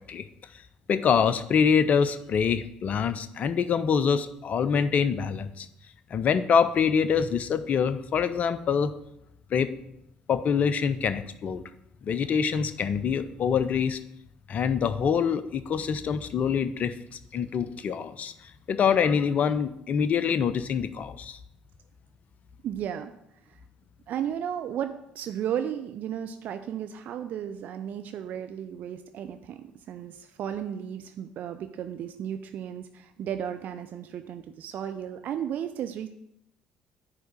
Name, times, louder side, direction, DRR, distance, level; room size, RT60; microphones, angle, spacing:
voice 1, 0.9-5.7 6.1-8.9 9.5-9.7 10.3-11.6 12.0-14.0 14.5-17.0 17.3-21.4, left 7 dB, 40° left, 13 dB, 0.5 m, -25 dB
voice 2, 22.6-23.1 23.4-23.6 24.1-36.1, right 9 dB, 50° right, 8 dB, 0.4 m, -34 dB
9.4 x 3.4 x 6.3 m, 0.80 s
figure-of-eight pair, 50°, 4 cm